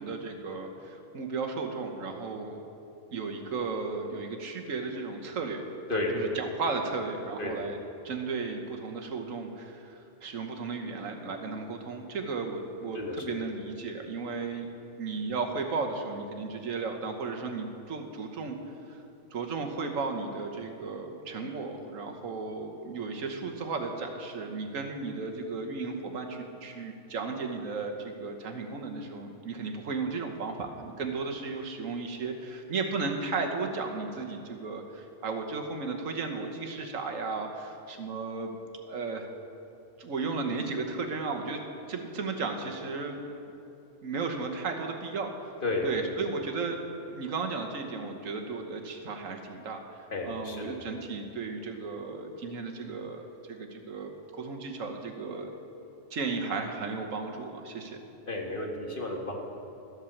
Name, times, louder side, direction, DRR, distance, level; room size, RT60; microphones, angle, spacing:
voice 1, 0.0-2.6 3.1-5.6 6.1-7.8 8.0-14.7 15.0-18.6 18.9-19.0 19.3-39.3 40.0-41.6 41.9-43.2 44.0-45.5 45.8-46.8 47.1-55.5 56.1-58.0, right 4 dB, 80° right, 3 dB, 1.5 m, -35 dB
voice 2, 12.9-13.3 45.6-45.9 50.1-50.8 58.3-59.3, left 2 dB, 40° left, 0 dB, 1.7 m, -32 dB
12.5 x 8.1 x 7.1 m, 2.8 s
omnidirectional pair, 1.3 m